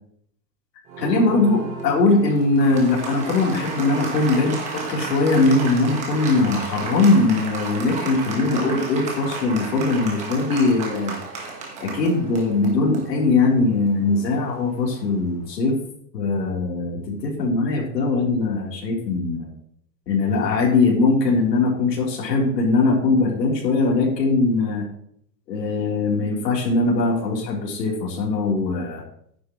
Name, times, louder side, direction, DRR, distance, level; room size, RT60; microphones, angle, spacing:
Applause, 0.9-15.2, right 4 dB, 15° right, 1.3 m, -33 dB
voice 1, 1.0-11.2 11.8-15.8 16.1-19.5 20.1-24.9 25.5-29.0, left 3 dB, 75° left, -3 dB, 3.7 m, -21 dB
11.5 x 9.7 x 3.1 m, 0.66 s
supercardioid pair, 175°, 49 cm